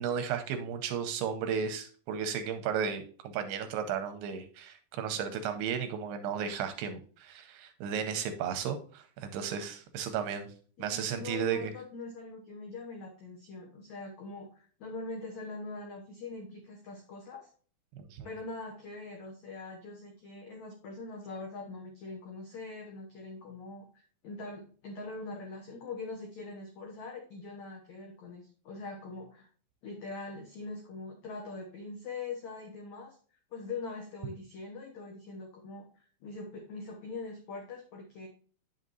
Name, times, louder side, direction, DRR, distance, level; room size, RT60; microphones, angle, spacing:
voice 1, 0.0-10.5 10.8-11.7 18.0-18.3, right 7 dB, 80° right, 8 dB, 2.5 m, -34 dB
voice 2, 10.8-17.5 18.2-29.5 29.8-33.2 33.5-38.3, left 3 dB, 80° left, 1 dB, 1.6 m, -43 dB
8.9 x 6.4 x 2.6 m, 0.42 s
omnidirectional pair, 5.0 m